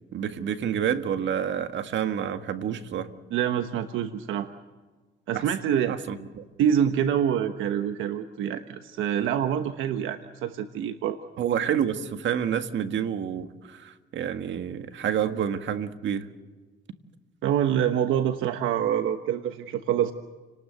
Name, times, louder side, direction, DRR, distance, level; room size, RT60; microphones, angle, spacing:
voice 1, 0.1-3.1 5.3-5.4 5.9-6.4 11.4-16.3, right 9 dB, 70° right, 8 dB, 1.8 m, -28 dB
voice 2, 3.3-4.5 5.3-6.0 6.6-11.2 17.4-20.1, right 9 dB, 90° right, 8 dB, 1.1 m, -26 dB
29.5 x 19.5 x 7.9 m, 1.4 s
cardioid pair, 90°, 20 cm